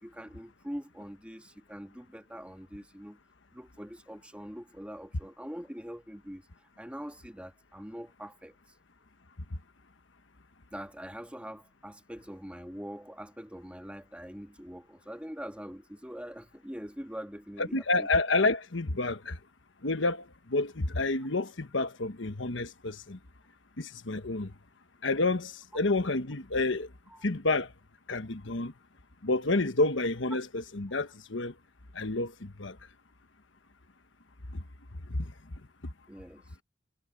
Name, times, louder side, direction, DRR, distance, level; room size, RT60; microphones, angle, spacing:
voice 1, 0.0-3.2 3.5-6.4 6.8-8.5 10.7-18.1 27.1-27.2 36.1-36.4, equal, 5° right, 1.8 m, -43 dB
voice 2, 17.6-19.4 19.8-23.2 23.8-24.5 25.0-26.9 27.2-27.7 28.1-28.7 29.2-31.5 31.9-32.8 34.5-34.6 35.1-35.3, left 2 dB, 70° left, 1.3 m, -29 dB
head